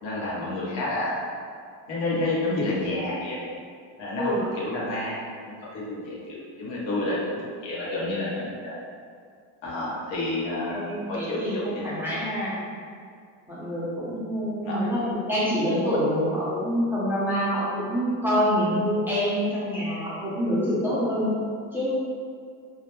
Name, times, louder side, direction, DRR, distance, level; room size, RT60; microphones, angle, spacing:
voice 1, 0.0-1.2 1.9-3.4 4.0-8.8 9.6-11.9 13.8-14.0 14.6-15.1, left 2 dB, 70° left, -6 dB, 0.9 m, -30 dB
voice 2, 10.7-12.5 13.5-21.4 21.7-21.9, equal, 5° right, -10 dB, 0.5 m, -26 dB
2.2 x 2.1 x 2.9 m, 2.2 s
cardioid pair, 110°, 44 cm